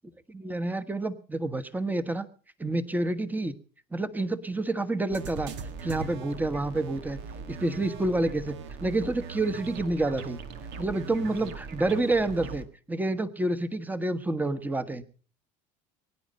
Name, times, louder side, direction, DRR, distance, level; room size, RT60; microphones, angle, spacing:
voice 1, 0.3-2.3 2.6-3.5 3.9-5.5 5.8-7.2 7.5-8.5 8.8-10.4 10.8-15.0, right 2 dB, 10° right, 13 dB, 1.3 m, -28 dB
sound 1, 5.1-12.7, right 5 dB, 70° right, 2.0 m, -40 dB
22.5 x 10.5 x 5.4 m, 0.40 s
supercardioid pair, 100°, 18 cm